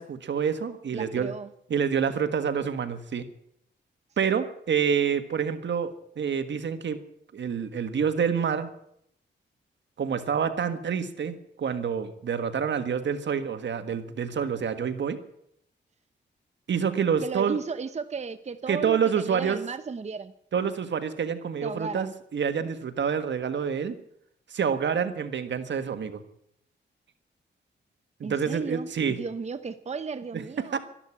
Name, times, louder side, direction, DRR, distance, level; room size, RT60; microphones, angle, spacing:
voice 1, 0.0-1.3 1.7-3.3 4.2-5.9 6.2-7.0 7.3-8.7 10.0-15.2 16.7-17.6 18.7-19.6 20.5-24.0 24.5-26.2 28.2-29.2 30.7-30.8, right 7 dB, 70° right, 10 dB, 1.6 m, -27 dB
voice 2, 0.9-1.5 17.2-20.3 21.6-22.1 28.2-30.8, right 5 dB, 35° right, 12 dB, 0.8 m, -34 dB
13.0 x 12.0 x 8.6 m, 0.72 s
cardioid pair, 80°, 19 cm